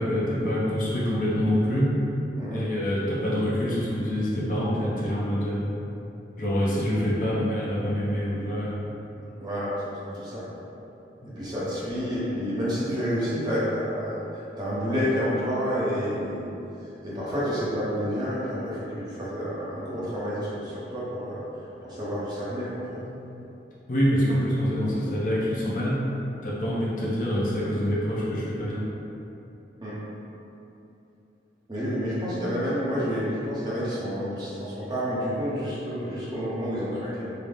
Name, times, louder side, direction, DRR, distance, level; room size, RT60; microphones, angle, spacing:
voice 1, 0.0-1.9 2.5-5.7 6.4-8.9 11.2-11.4 23.0-23.1 23.9-26.0 26.4-28.8, equal, 45° left, -6 dB, 0.6 m, -26 dB
voice 2, 9.4-10.4 11.4-16.5 17.0-21.4 21.8-22.9 29.8-30.0 31.7-37.3, equal, 25° right, -10 dB, 0.7 m, -29 dB
3.8 x 2.0 x 3.4 m, 2.8 s
head